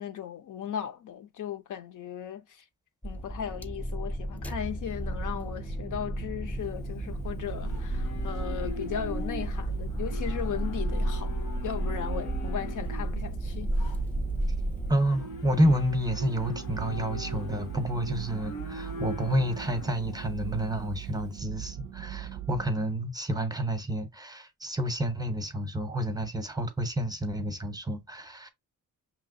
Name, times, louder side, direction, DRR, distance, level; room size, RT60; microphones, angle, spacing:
voice 1, 0.0-2.4 3.0-11.3 11.6-13.7, left 9 dB, 65° left, 0.7 m, -37 dB
sound 1, 3.0-14.9, equal, 5° left, 0.3 m, -33 dB
sound 2, 5.0-22.7, right 12 dB, 75° right, 0.5 m, -40 dB
Livestock farm animals working animals, 6.6-21.3, left 2 dB, 85° left, 1.3 m, -43 dB
voice 2, 14.9-28.5, right 1 dB, 10° right, 0.7 m, -29 dB
5.7 x 3.0 x 2.5 m
cardioid pair, 115°, 33 cm